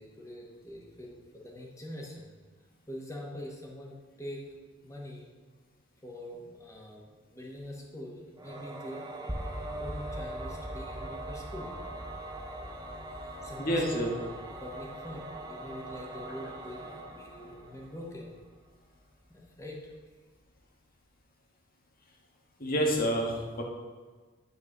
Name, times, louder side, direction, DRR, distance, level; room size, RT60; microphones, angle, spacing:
voice 1, 0.0-2.3 2.9-4.4 4.8-5.3 6.0-9.0 9.8-11.8 13.1-13.2 13.4-14.0 14.6-18.4 19.3-19.8, left 1 dB, 15° left, -2 dB, 1.7 m, -44 dB
Singing / Musical instrument, 8.4-18.4, right 2 dB, 20° right, 1.0 m, -43 dB
sound 1, 9.3-19.3, equal, 5° right, 0.5 m, -44 dB
voice 2, 13.6-14.1 22.6-23.6, equal, 45° left, -1 dB, 1.8 m, -28 dB
9.7 x 4.7 x 6.8 m, 1.4 s
head